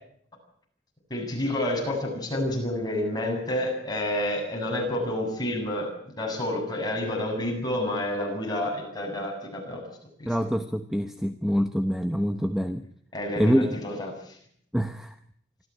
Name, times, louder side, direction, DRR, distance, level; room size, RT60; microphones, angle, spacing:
voice 1, 1.1-5.9 6.2-9.8 10.2-10.3 13.1-14.4, left 1 dB, 20° left, 0 dB, 7.9 m, -29 dB
voice 2, 10.3-12.8 13.4-13.7 14.7-15.1, equal, ahead, 8 dB, 1.0 m, -25 dB
25.5 x 14.5 x 9.9 m, 0.67 s
head